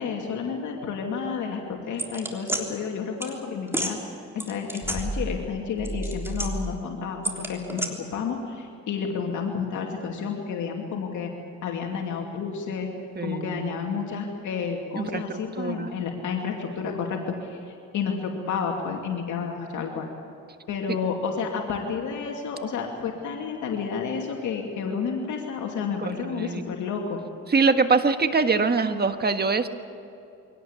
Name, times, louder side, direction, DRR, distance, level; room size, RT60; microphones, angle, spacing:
voice 1, 0.0-4.0 4.3-11.3 11.6-12.9 13.2-20.1 20.7-27.2, left 6 dB, 75° left, 1 dB, 2.6 m, -30 dB
sound 1, 2.0-2.6 3.2-3.3 3.7-3.9 4.4-5.5 5.8-6.8 7.2-7.9, right 1 dB, 10° right, 3.5 m, -30 dB
voice 2, 13.1-14.1 14.9-15.9 26.0-26.7 27.5-29.7, right 4 dB, 35° right, 8 dB, 1.5 m, -24 dB
24.0 x 18.0 x 8.3 m, 2.8 s
cardioid pair, 90°, 30 cm